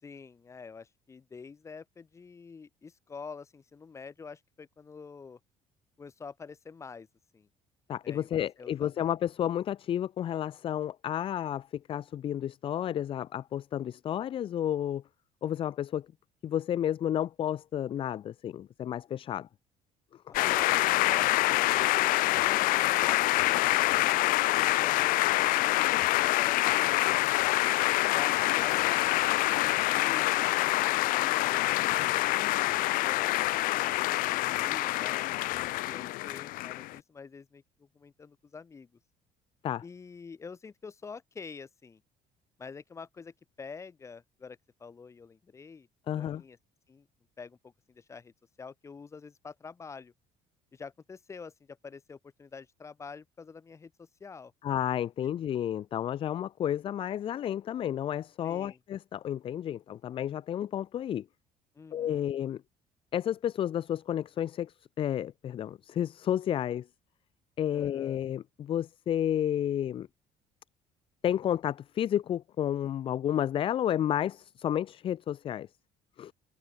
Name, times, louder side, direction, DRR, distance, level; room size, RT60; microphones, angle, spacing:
voice 1, 0.0-5.4 6.0-7.1 7.3-7.5 8.0-9.1 20.3-20.7 21.0-27.4 28.1-38.9 39.8-42.0 42.6-45.9 46.2-46.6 46.9-47.1 47.4-48.3 48.6-50.1 50.7-54.5 58.4-58.8 61.7-62.3 67.7-68.2, left 5 dB, 20° left, 6.2 m, -47 dB
voice 2, 7.9-15.0 15.4-16.1 16.4-19.5 39.6-39.8 46.1-46.4 54.6-61.2 61.9-62.6 63.1-66.9 67.6-70.1 71.2-75.7 76.2-76.3, left 10 dB, 40° left, 1.1 m, -31 dB
sound 1, 20.3-37.0, left 19 dB, 80° left, 1.1 m, -26 dB
cardioid pair, 175°, 14 cm